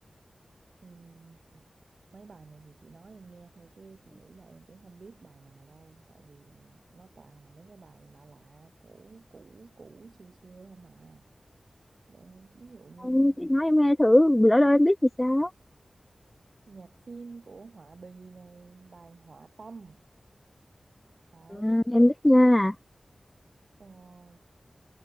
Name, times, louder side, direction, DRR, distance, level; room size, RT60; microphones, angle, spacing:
voice 1, 0.8-1.7 2.1-11.2 12.1-13.4 16.7-20.0 21.3-21.9 23.8-24.4, right 4 dB, 70° right, 3.9 m, -50 dB
voice 2, 13.0-15.5 21.5-22.7, left 1 dB, 15° left, 0.5 m, -20 dB
cardioid pair, 45°, 0 cm